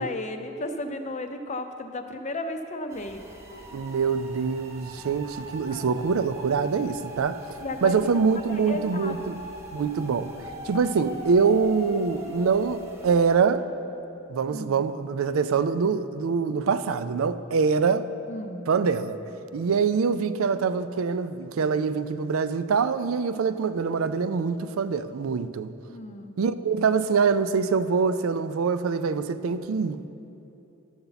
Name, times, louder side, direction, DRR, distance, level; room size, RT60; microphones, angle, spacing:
voice 1, 0.0-3.2 5.7-6.0 7.6-8.0 8.5-9.1 14.5-14.8 18.3-18.6 25.9-26.3, left 2 dB, 35° left, 0.5 m, -34 dB
sound 1, 2.9-13.4, equal, 15° right, 1.0 m, -41 dB
voice 2, 3.7-7.4 7.8-9.4 9.7-10.3 10.6-13.7 14.3-18.1 18.7-19.2 19.5-25.7 26.4-30.1, right 5 dB, 85° right, 0.4 m, -24 dB
13.0 x 6.9 x 4.0 m
head